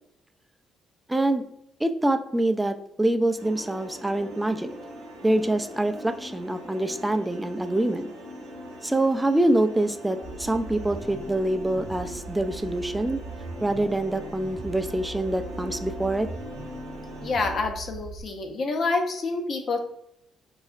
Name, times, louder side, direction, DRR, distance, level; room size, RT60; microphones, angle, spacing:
voice 1, 1.1-1.4 1.8-4.7 5.2-8.1 8.8-13.2 13.6-16.3, right 1 dB, 10° right, 7 dB, 0.3 m, -25 dB
sound 1, 3.4-17.5, equal, 85° right, 0.7 m, -42 dB
sound 2, 10.2-18.2, right 3 dB, 40° right, 0.7 m, -40 dB
voice 2, 17.2-19.8, left 3 dB, 55° left, 5 dB, 0.6 m, -27 dB
3.9 x 2.0 x 2.4 m, 0.74 s
hypercardioid pair, 50°, 0 cm